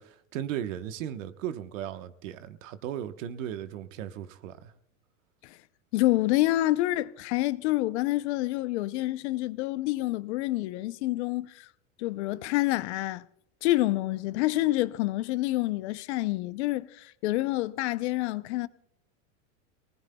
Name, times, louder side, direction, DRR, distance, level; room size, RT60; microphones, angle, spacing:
voice 1, 0.0-4.7, right 10 dB, 75° right, 1.2 m, -36 dB
voice 2, 5.9-11.7 12.0-13.2 13.6-18.7, left 17 dB, 60° left, 0.7 m, -27 dB
27.5 x 19.0 x 2.2 m
supercardioid pair, 155°, 39 cm